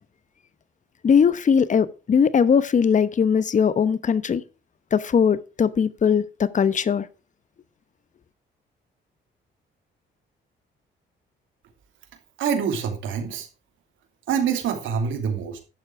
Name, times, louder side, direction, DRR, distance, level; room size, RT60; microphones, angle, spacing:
voice 1, 1.0-4.4 4.9-7.1, left 7 dB, 40° left, 0.9 m, -20 dB
voice 2, 12.4-13.5 14.3-15.6, right 7 dB, 80° right, 2.9 m, -25 dB
11.0 x 7.3 x 4.7 m
cardioid pair, 90°, 20 cm